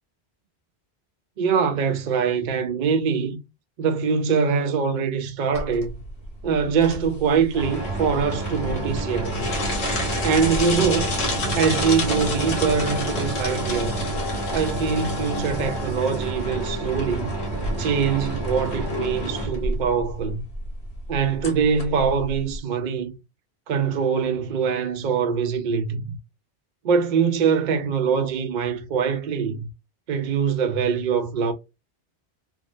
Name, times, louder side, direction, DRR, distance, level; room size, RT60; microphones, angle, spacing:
voice 1, 1.4-3.4 3.8-5.9 6.4-9.4 10.2-11.2 11.6-14.0 14.5-17.3 17.8-20.4 21.1-23.1 23.7-26.1 26.8-29.7 30.1-31.5, right 6 dB, 55° right, 0.6 m, -23 dB
sound 1, 5.5-22.6, equal, 90° left, 1.3 m, -28 dB
3.4 x 2.1 x 2.5 m
omnidirectional pair, 1.1 m